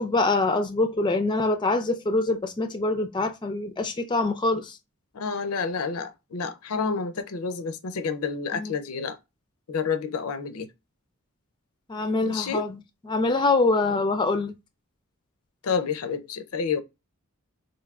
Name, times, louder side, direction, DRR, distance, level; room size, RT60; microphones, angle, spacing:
voice 1, 0.0-4.8 8.5-8.7 11.9-12.8 13.0-14.5, left 3 dB, 20° left, 0.4 m, -24 dB
voice 2, 5.1-9.2 9.7-10.7 12.2-12.7 15.6-16.8, left 5 dB, 80° left, 0.5 m, -29 dB
4.6 x 2.6 x 2.3 m
head